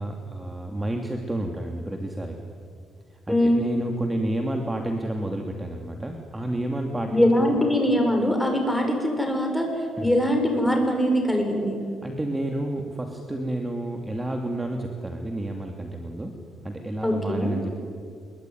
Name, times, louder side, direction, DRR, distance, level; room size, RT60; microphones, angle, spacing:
voice 1, 0.0-2.4 3.3-7.6 10.0-10.1 12.0-16.4 16.6-17.8, right 1 dB, 15° right, 3 dB, 2.8 m, -30 dB
voice 2, 3.3-3.7 7.1-9.7 10.0-11.8 17.0-17.6, equal, 5° left, 3 dB, 7.0 m, -22 dB
26.5 x 23.0 x 9.5 m, 2.2 s
cardioid pair, 90°, 0 cm